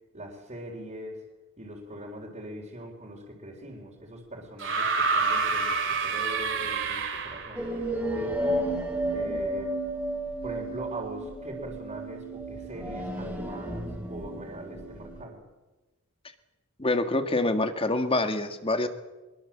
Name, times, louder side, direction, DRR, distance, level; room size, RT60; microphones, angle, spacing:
voice 1, 0.1-1.2 1.6-7.7 8.1-8.4 9.1-9.7 10.4-15.4, equal, 30° right, -4 dB, 4.0 m, -41 dB
sound 1, 4.6-7.7 8.9-9.0, right 4 dB, 60° right, 3.0 m, -27 dB
sound 2, 7.5-15.2, right 1 dB, 5° right, 3.9 m, -32 dB
voice 2, 16.8-18.9, left 2 dB, 25° left, 9 dB, 1.9 m, -26 dB
23.0 x 22.0 x 7.5 m, 1.2 s
head